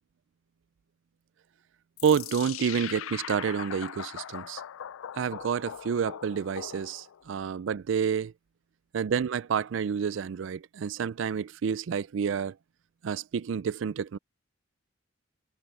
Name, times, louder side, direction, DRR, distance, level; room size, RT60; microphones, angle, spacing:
sound 1, 2.0-7.3, left 10 dB, 85° left, 0.4 m, -40 dB
voice 1, 2.0-4.6 5.2-8.3 8.9-12.6 13.0-14.2, right 7 dB, 65° right, 0.4 m, -29 dB
head